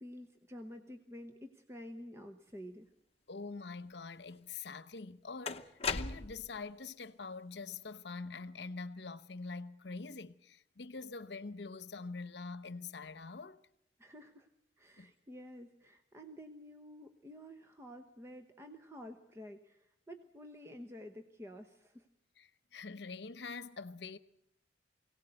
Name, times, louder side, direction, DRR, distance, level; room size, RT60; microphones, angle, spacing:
voice 1, 0.0-2.9 14.0-14.5 14.8-22.1, equal, 15° right, 0.9 m, -50 dB
voice 2, 3.3-13.6 15.0-15.1 22.4-24.2, left 4 dB, 70° left, 0.9 m, -45 dB
sound 1, 4.5-4.6 5.4-6.6, left 5 dB, 35° left, 0.8 m, -37 dB
23.5 x 17.5 x 7.9 m
head